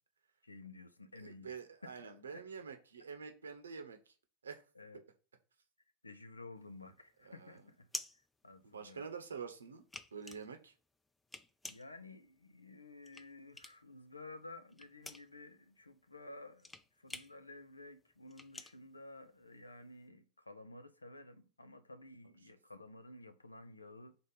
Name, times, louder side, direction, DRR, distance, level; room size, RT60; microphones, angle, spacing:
voice 1, 0.4-1.5 1.8-1.9 2.3-2.6 4.7-5.0 6.0-7.9 8.4-9.1 11.7-24.2, left 2 dB, 85° left, 0.6 m, -53 dB
voice 2, 1.2-4.1 4.4-4.6 7.2-7.6 8.6-9.8 10.1-10.7, right 5 dB, 75° right, 0.9 m, -47 dB
sound 1, 6.6-9.2 9.6-14.0 14.3-19.8, left 2 dB, 10° left, 0.4 m, -49 dB
5.2 x 3.9 x 5.6 m
figure-of-eight pair, 90°, 0 cm